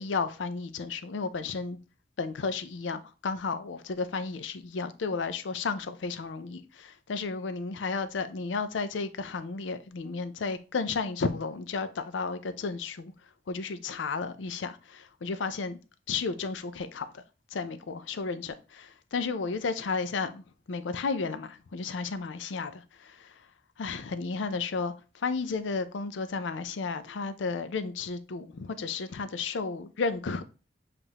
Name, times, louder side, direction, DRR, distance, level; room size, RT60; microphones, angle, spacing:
voice 1, 0.0-1.8 2.2-13.1 13.5-15.8 16.1-17.2 17.5-20.4 20.7-23.3 23.8-30.4, left 4 dB, 90° left, 0.5 m, -33 dB
7.2 x 2.5 x 2.9 m
head